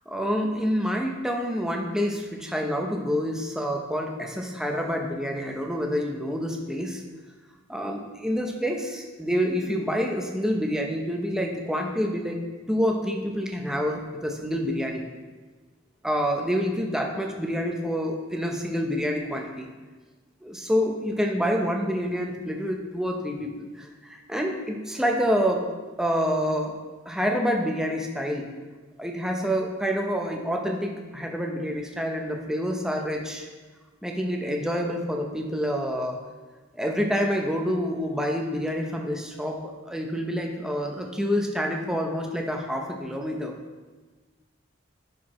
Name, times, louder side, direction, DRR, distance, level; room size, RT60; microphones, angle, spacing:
voice 1, 0.1-7.0 7.7-12.4 12.7-15.0 16.0-19.7 20.4-25.6 26.0-26.7 27.1-28.5 29.0-33.5 34.0-36.2 36.7-43.5, equal, 5° right, 1 dB, 0.7 m, -27 dB
10.5 x 4.6 x 3.1 m, 1.3 s
head